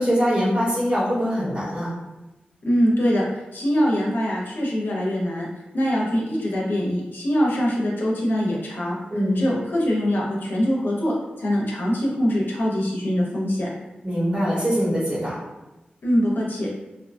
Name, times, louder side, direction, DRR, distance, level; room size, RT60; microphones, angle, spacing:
voice 1, 0.0-1.9 9.1-9.4 14.0-15.4, equal, 35° right, -7 dB, 1.3 m, -23 dB
voice 2, 2.6-3.2 3.5-5.5 5.7-9.0 9.4-11.1 11.4-13.7 16.0-16.7, equal, 70° left, -4 dB, 0.7 m, -23 dB
2.7 x 2.2 x 2.5 m, 1.0 s
wide cardioid pair, 75°, 3 cm